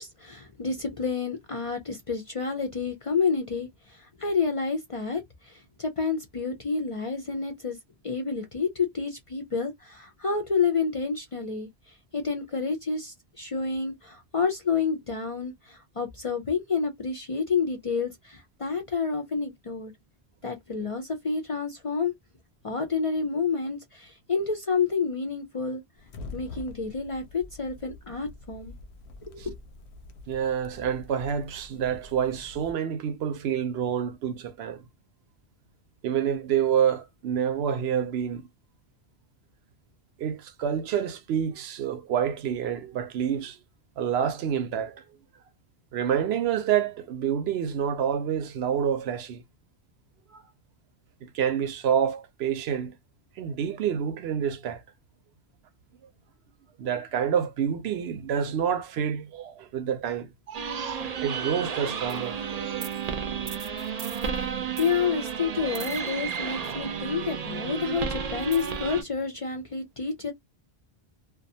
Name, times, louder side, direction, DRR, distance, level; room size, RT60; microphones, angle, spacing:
voice 1, 0.0-7.8 8.0-19.9 20.4-22.1 22.6-25.8 26.3-28.7 29.2-29.5 64.6-70.3, left 5 dB, 45° left, 0.4 m, -29 dB
sound 1, 26.0-32.7, left 2 dB, 90° left, 0.9 m, -45 dB
voice 2, 30.3-34.8 36.0-38.5 40.2-43.6 44.0-45.0 45.9-49.4 50.3-50.4 51.2-53.0 53.4-54.8 56.8-62.9, right 8 dB, 80° right, 0.8 m, -28 dB
sound 2, 60.5-69.0, right 6 dB, 50° right, 0.5 m, -32 dB
2.4 x 2.2 x 2.6 m
omnidirectional pair, 1.1 m